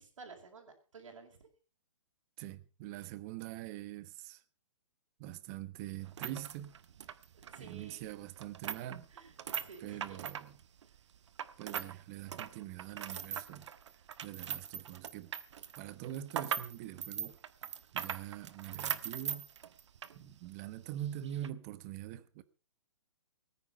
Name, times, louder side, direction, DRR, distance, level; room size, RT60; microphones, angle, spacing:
voice 1, 0.0-1.4 7.3-8.0 9.1-10.2, right 4 dB, 85° right, 5.2 m, -53 dB
voice 2, 2.4-4.4 5.2-6.8 7.6-9.1 9.8-10.6 11.6-15.3 15.8-17.4 17.9-19.5 20.1-22.4, right 12 dB, 30° right, 1.2 m, -44 dB
sound 1, 6.0-11.9 12.2-20.2 20.5-20.6 21.2-21.5, right 8 dB, 65° right, 1.3 m, -41 dB
18.5 x 10.0 x 5.6 m
hypercardioid pair, 155°, 16 cm